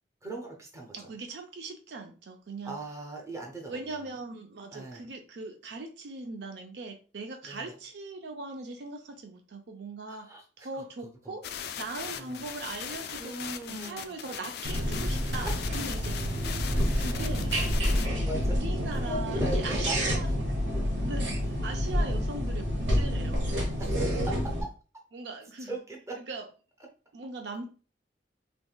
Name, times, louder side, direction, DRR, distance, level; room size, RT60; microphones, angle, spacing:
voice 1, 0.2-1.1 2.6-3.8 4.7-5.1 7.5-7.8 10.1-10.4 10.7-10.8 11.2-11.3 12.1-12.5 13.2-14.3 18.2-18.6 19.1-20.3 20.7-21.1 21.9-22.2 23.8-24.7 25.7-26.2, right 2 dB, 15° right, 0 dB, 0.7 m, -39 dB
voice 2, 0.9-2.8 3.7-10.3 10.6-11.5 11.8-13.4 13.7-16.4 17.0-17.5 17.9-20.3 21.0-23.7 25.1-25.8 26.2-26.4 27.1-27.7, right 3 dB, 70° right, 4 dB, 0.5 m, -40 dB
sound 1, 11.4-18.1, left 8 dB, 60° left, 0.3 m, -39 dB
sound 2, 14.6-24.6, equal, 85° right, 1.0 m, -28 dB
3.4 x 3.0 x 2.3 m, 0.36 s
head